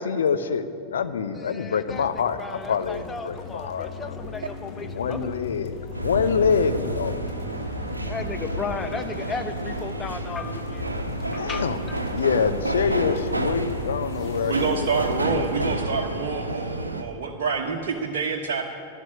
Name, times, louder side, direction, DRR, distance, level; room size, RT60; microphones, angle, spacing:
voice 1, 0.0-4.2 4.8-7.2 11.4-11.8 12.1-14.8 15.3-15.6, left 6 dB, 65° left, 9 dB, 0.9 m, -26 dB
voice 2, 1.3-5.3 8.0-10.9 11.3-12.0, left 4 dB, 15° left, 8 dB, 1.1 m, -35 dB
sound 1, 1.9-17.3, left 4 dB, 35° left, 1.4 m, -41 dB
sound 2, 5.9-17.0, right 1 dB, 85° right, 0.9 m, -30 dB
voice 3, 14.5-18.6, right 5 dB, 55° right, -1 dB, 1.2 m, -27 dB
12.0 x 11.0 x 9.7 m, 2.5 s
figure-of-eight pair, 90°, 0 cm